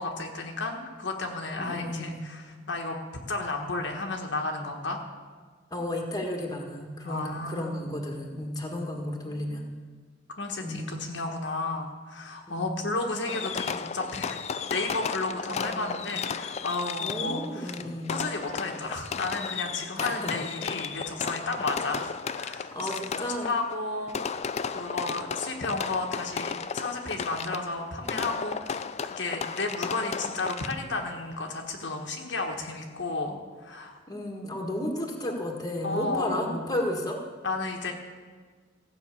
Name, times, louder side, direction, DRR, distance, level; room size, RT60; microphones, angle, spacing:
voice 1, 0.0-3.0 3.3-5.0 7.0-7.9 9.2-9.6 10.4-14.4 14.7-17.8 18.1-23.0 23.4-24.4 24.7-34.0 35.8-36.5 37.4-37.9, left 3 dB, 70° left, 2 dB, 1.4 m, -33 dB
voice 2, 1.6-2.2 5.7-9.7 10.6-11.0 12.5-12.8 15.4-15.9 17.0-18.1 20.0-20.3 22.7-23.5 34.1-37.2, left 1 dB, 20° left, 1 dB, 1.7 m, -33 dB
Fireworks, 13.3-31.0, left 6 dB, 35° left, 0.4 m, -34 dB
15.0 x 6.3 x 8.4 m, 1.5 s
head